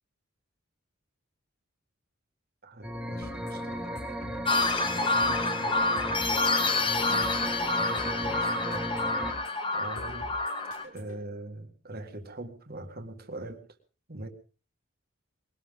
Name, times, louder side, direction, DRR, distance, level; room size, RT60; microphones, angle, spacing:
voice 1, 2.6-4.0 4.9-6.5 7.0-8.9 9.7-10.3 10.8-13.6 14.1-14.3, right 2 dB, 45° right, 5 dB, 1.8 m, -43 dB
sound 1, 2.8-9.3, equal, 5° right, 1.6 m, -35 dB
sound 2, 3.2-11.2, left 1 dB, 75° left, 6.3 m, -46 dB
sound 3, 4.4-10.8, left 3 dB, 25° left, 1.4 m, -28 dB
22.0 x 18.0 x 3.7 m, 0.37 s
head